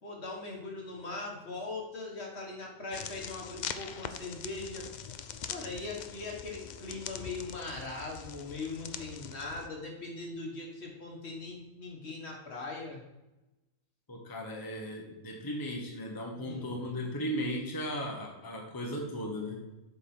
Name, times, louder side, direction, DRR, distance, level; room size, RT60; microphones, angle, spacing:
voice 1, 0.0-4.9 5.5-13.0 16.4-17.0, left 3 dB, 55° left, -1 dB, 1.7 m, -40 dB
sound 1, 2.9-9.7, left 7 dB, 75° left, 0.4 m, -43 dB
voice 2, 14.1-19.6, equal, 20° left, 0 dB, 1.0 m, -36 dB
8.1 x 5.4 x 4.3 m, 1.0 s
omnidirectional pair, 1.3 m